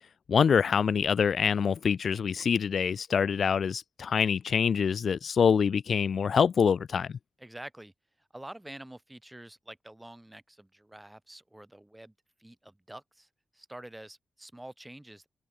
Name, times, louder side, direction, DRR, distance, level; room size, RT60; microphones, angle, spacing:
voice 1, 0.3-7.2, left 6 dB, 60° left, 0.5 m, -25 dB
voice 2, 7.4-7.9 8.3-12.1 12.4-13.3 13.5-15.3, right 1 dB, 10° right, 6.3 m, -47 dB
open air
cardioid pair, 95°, 0 cm